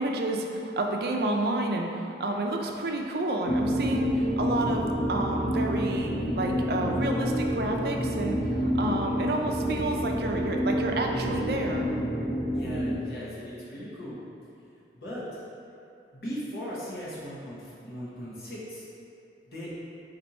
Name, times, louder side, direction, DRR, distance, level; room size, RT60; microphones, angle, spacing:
voice 1, 0.0-11.9, right 2 dB, 60° right, 2 dB, 0.4 m, -30 dB
sound 1, 3.4-12.9, equal, 85° left, 1.0 m, -28 dB
voice 2, 12.5-14.2 14.9-15.4 16.1-18.8 19.5-19.7, equal, 60° left, -8 dB, 1.1 m, -38 dB
4.3 x 2.6 x 4.2 m, 2.6 s
head